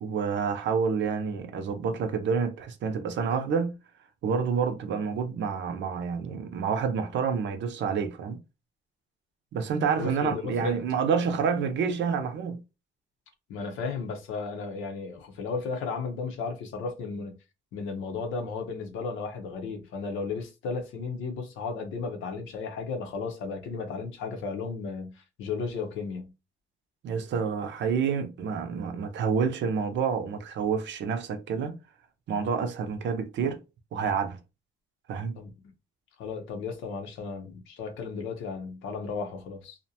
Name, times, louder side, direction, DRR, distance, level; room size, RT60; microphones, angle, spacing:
voice 1, 0.0-3.7 4.2-8.4 9.5-12.6 27.0-31.8 32.3-33.6 33.9-34.4 35.1-35.3, right 6 dB, 65° right, 0.5 m, -28 dB
voice 2, 10.0-10.8 13.5-17.3 17.7-26.3 35.3-35.5 36.2-39.8, left 4 dB, 90° left, 0.7 m, -34 dB
2.5 x 2.1 x 2.7 m
cardioid pair, 90°, 20 cm